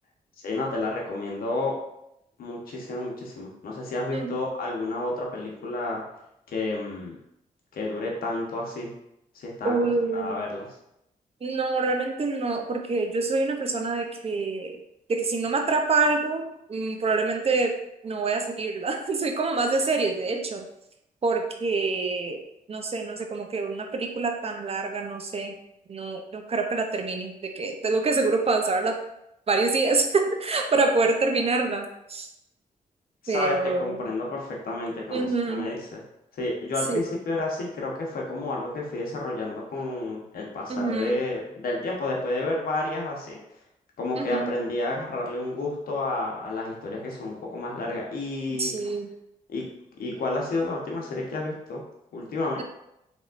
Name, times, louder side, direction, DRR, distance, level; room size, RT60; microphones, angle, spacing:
voice 1, 0.4-1.7 2.4-6.0 6.5-7.1 7.7-8.9 9.3-9.7 10.1-10.7 33.2-36.0 36.3-43.4 44.0-48.9 49.5-49.6 50.0-51.8 52.1-52.6, left 2 dB, 75° left, -2 dB, 1.1 m, -30 dB
voice 2, 9.6-10.4 11.4-14.8 15.1-17.7 18.0-20.6 21.2-22.4 22.7-25.5 25.9-29.0 29.5-32.3 33.3-34.0 35.1-35.7 36.9-37.0 40.7-41.2 44.2-44.5 48.5-49.1, right 3 dB, 40° right, 4 dB, 0.6 m, -26 dB
4.1 x 3.5 x 2.5 m, 0.82 s
cardioid pair, 70°, 15 cm